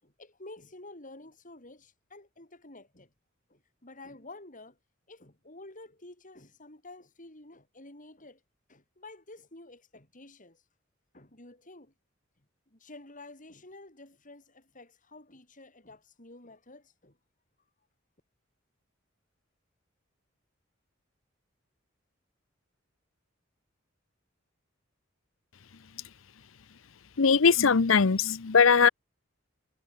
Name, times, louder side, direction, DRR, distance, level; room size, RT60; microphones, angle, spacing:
voice 1, 0.0-3.1 3.5-4.8 5.1-8.4 8.7-10.6 11.1-11.9 12.7-17.2, left 2 dB, 40° left, 7.3 m, -50 dB
voice 2, 27.2-28.9, left 5 dB, 80° left, 0.8 m, -20 dB
head